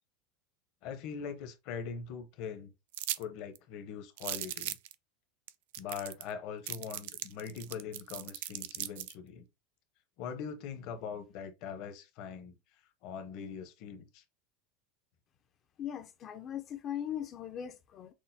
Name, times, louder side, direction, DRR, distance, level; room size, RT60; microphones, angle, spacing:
voice 1, 0.8-2.7 3.2-4.8 5.8-9.5 10.2-12.6 13.0-14.2, left 7 dB, 45° left, 0.7 m, -42 dB
sound 1, 2.9-3.2 3.5-3.6 4.2-4.9 5.5-5.6 5.7-6.3 6.7-9.1, right 14 dB, 70° right, 0.3 m, -38 dB
voice 2, 15.8-18.1, left 10 dB, 25° left, 0.4 m, -39 dB
6.1 x 2.1 x 2.6 m
supercardioid pair, 175°, 0 cm